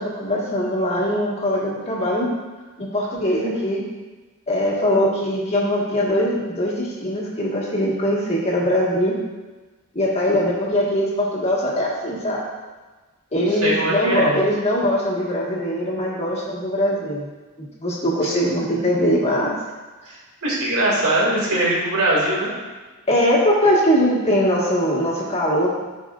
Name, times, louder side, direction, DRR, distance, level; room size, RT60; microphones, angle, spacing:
voice 1, 0.0-2.3 2.8-3.8 4.5-9.2 9.9-12.4 13.3-17.3 17.8-19.5 23.1-25.7, equal, 30° left, -5 dB, 1.5 m, -21 dB
voice 2, 13.6-14.4 18.2-18.3 20.4-22.5, right 1 dB, 75° right, -5 dB, 2.3 m, -21 dB
12.0 x 4.9 x 2.4 m, 1.3 s
head